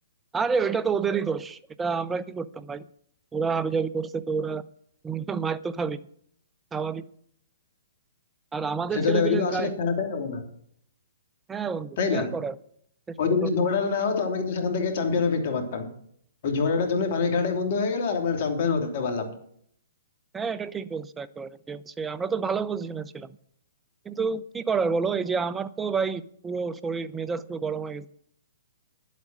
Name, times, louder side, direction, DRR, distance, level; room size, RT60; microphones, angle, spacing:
voice 1, 0.3-2.9 3.3-4.6 5.0-6.0 6.7-7.0 8.5-9.7 11.5-12.6 13.1-13.5 20.3-23.3 24.0-28.1, right 5 dB, 10° right, 16 dB, 0.6 m, -29 dB
voice 2, 8.9-10.4 12.0-12.3 13.2-15.9 16.4-19.4, left 5 dB, 50° left, 5 dB, 3.0 m, -25 dB
11.0 x 8.4 x 6.3 m, 0.65 s
hypercardioid pair, 130°, 0 cm